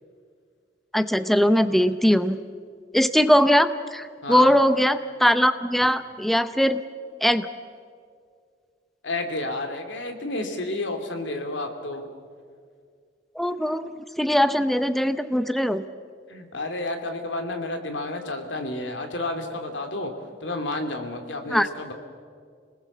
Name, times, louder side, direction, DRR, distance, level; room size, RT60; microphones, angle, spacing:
voice 1, 0.9-2.4 2.9-6.8 7.2-7.5 13.4-15.8 21.5-21.7, equal, ahead, 11 dB, 0.6 m, -21 dB
voice 2, 4.2-4.5 9.0-12.1 16.3-20.1 20.4-21.9, left 2 dB, 80° left, 5 dB, 2.8 m, -31 dB
27.5 x 20.0 x 7.3 m, 2.1 s
head